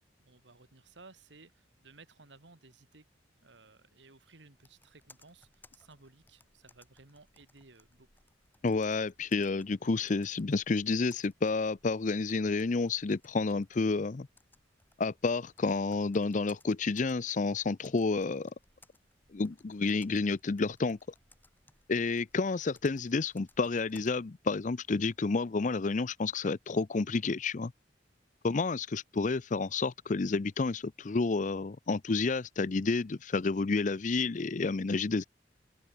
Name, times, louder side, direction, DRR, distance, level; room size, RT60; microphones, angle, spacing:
voice 1, 0.2-3.0 3.4-8.1, right 3 dB, 80° right, 2.1 m, -57 dB
Computer keyboard, 4.5-24.1, left 2 dB, 10° left, 5.0 m, -64 dB
voice 2, 8.6-14.3 15.0-18.5 19.3-21.0 21.9-27.7 28.4-35.2, left 3 dB, 45° left, 0.5 m, -30 dB
open air
head